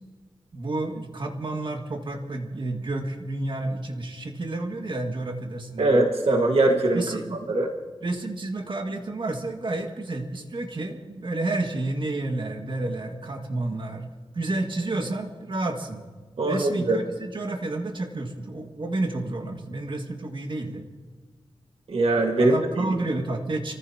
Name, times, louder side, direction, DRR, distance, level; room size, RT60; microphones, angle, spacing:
voice 1, 0.5-6.0 6.9-7.5 8.0-14.1 14.3-16.1 16.5-20.8 22.4-23.7, right 2 dB, 55° right, 2 dB, 2.0 m, -30 dB
voice 2, 5.8-7.0 7.5-7.7 16.4-17.0 21.9-22.9, right 2 dB, 80° right, 1 dB, 1.7 m, -21 dB
29.0 x 15.0 x 2.9 m, 1.4 s
wide cardioid pair, 85°, 10 cm